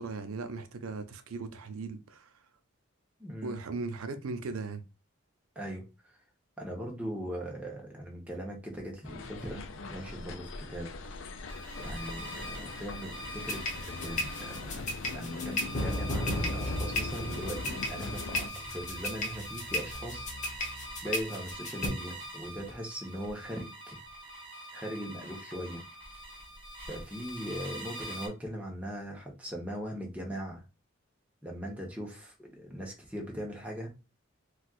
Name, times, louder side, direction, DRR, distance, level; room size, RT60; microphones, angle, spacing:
voice 1, 0.0-2.3 3.4-4.8, right 3 dB, 90° right, 0.5 m, -38 dB
voice 2, 3.2-3.6 5.6-6.1 6.6-10.9 11.8-24.0 24.7-25.8 26.9-30.6 31.4-33.9, equal, 5° right, 0.8 m, -40 dB
sound 1, 9.0-18.5, left 3 dB, 65° left, 0.4 m, -42 dB
sound 2, 11.5-28.3, equal, 25° right, 1.1 m, -44 dB
sound 3, 13.4-21.9, left 1 dB, 35° left, 0.9 m, -34 dB
4.2 x 2.3 x 2.3 m
head